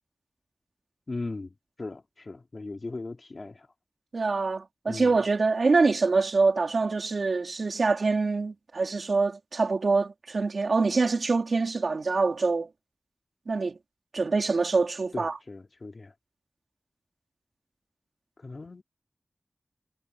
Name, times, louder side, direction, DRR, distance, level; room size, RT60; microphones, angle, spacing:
voice 1, 1.1-3.7 4.9-5.1 15.1-16.1 18.4-18.8, left 3 dB, 55° left, 3.1 m, -38 dB
voice 2, 4.1-12.7 13.5-13.8 14.1-15.3, right 4 dB, 80° right, 3.4 m, -25 dB
wide cardioid pair, 65°, 0 cm